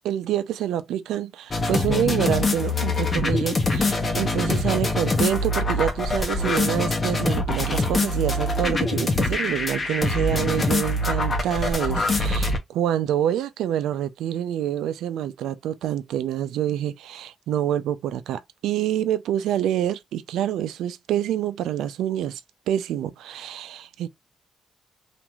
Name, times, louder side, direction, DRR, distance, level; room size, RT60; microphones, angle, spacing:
voice 1, 0.0-22.4 22.7-24.1, right 11 dB, 90° right, 0.3 m, -27 dB
sound 1, 1.5-12.6, left 2 dB, 40° left, 0.8 m, -24 dB
2.9 x 2.5 x 2.3 m
cardioid pair, 70°, 0 cm